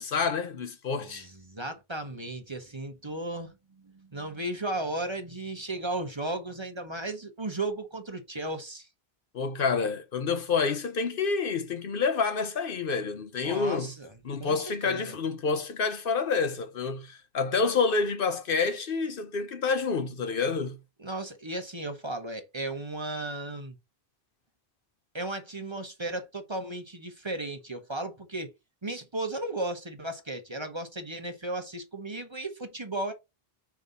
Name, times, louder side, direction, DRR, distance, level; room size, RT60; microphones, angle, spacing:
voice 1, 0.0-1.3 9.3-13.9 14.2-20.8, left 5 dB, 65° left, 0.9 m, -28 dB
voice 2, 1.0-3.6 3.8-8.9 13.4-14.1 14.4-15.1 21.0-23.8 25.1-28.5 28.8-33.1, right 2 dB, 30° right, 1.1 m, -35 dB
5.3 x 4.8 x 3.9 m
omnidirectional pair, 1.0 m